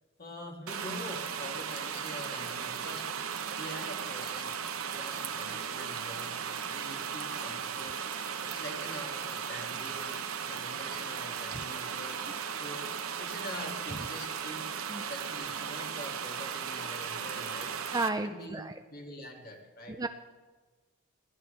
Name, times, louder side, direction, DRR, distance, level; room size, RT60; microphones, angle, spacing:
voice 1, 0.2-3.2 3.5-4.6 4.9-6.4 6.7-8.1 8.5-12.9 13.2-14.7 15.1-17.8 18.2-20.0, left 1 dB, 45° left, 0 dB, 2.2 m, -45 dB
sound 1, 0.7-18.1, right 7 dB, 75° right, 0.9 m, -36 dB
voice 2, 17.9-18.7 19.9-20.1, right 3 dB, 15° right, 8 dB, 0.4 m, -32 dB
21.0 x 14.5 x 3.3 m, 1.4 s
head